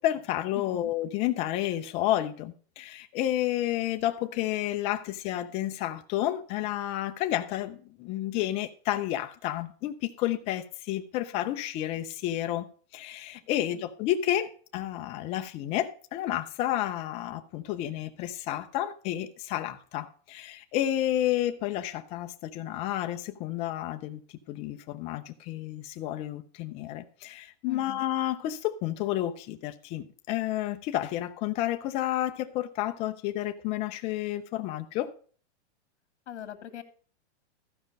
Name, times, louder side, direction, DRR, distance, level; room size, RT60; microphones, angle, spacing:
voice 1, 0.0-12.7 12.9-24.2 24.5-35.1, left 13 dB, 20° left, 0.5 m, -31 dB
voice 2, 0.5-0.9 13.6-13.9 27.7-28.0 36.3-36.8, left 11 dB, 75° left, 1.8 m, -41 dB
14.0 x 5.1 x 5.3 m
hypercardioid pair, 155°, 34 cm